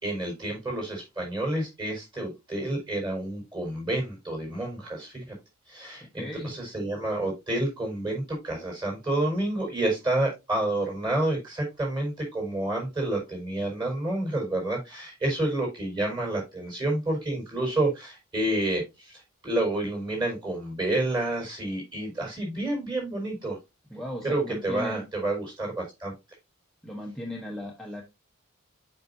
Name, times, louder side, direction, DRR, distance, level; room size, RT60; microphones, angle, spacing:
voice 1, 0.0-5.3 5.7-23.6 24.2-26.1, right 1 dB, 20° right, 0 dB, 4.7 m, -29 dB
voice 2, 6.1-6.6 23.9-25.1 26.8-28.0, left 1 dB, ahead, -1 dB, 1.0 m, -36 dB
7.4 x 5.6 x 2.7 m, 0.23 s
head